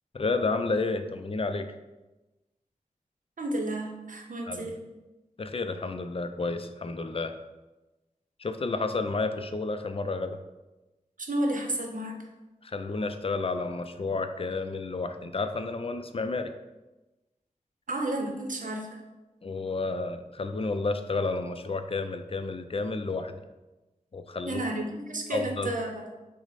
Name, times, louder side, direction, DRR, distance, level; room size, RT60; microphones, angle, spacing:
voice 1, 0.1-1.7 4.4-4.7 5.4-7.3 8.4-10.4 12.6-16.5 19.4-23.3 24.1-24.6 25.3-25.7, left 3 dB, 45° left, 8 dB, 0.4 m, -31 dB
voice 2, 3.4-4.8 11.3-12.2 17.9-19.0 24.5-26.0, right 1 dB, 80° right, 2 dB, 0.7 m, -31 dB
6.1 x 2.1 x 4.0 m, 1.1 s
wide cardioid pair, 60°, 13 cm